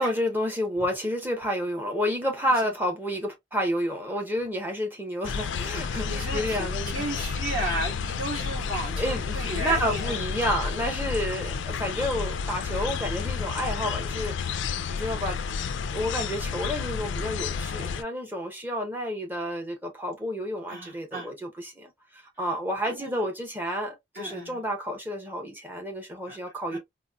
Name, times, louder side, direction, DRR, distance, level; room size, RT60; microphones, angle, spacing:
voice 1, 0.0-6.9 9.0-14.6 14.9-15.4 15.9-26.8, equal, 10° right, 0.7 m, -30 dB
sound 1, 5.2-18.0, left 6 dB, 65° left, 0.3 m, -31 dB
voice 2, 6.0-10.2 20.7-21.3 22.8-23.3 23.6-23.8 24.1-24.6 26.3-26.4 26.7-26.8, right 1 dB, 45° right, 1.6 m, -34 dB
4.0 x 2.0 x 2.3 m
head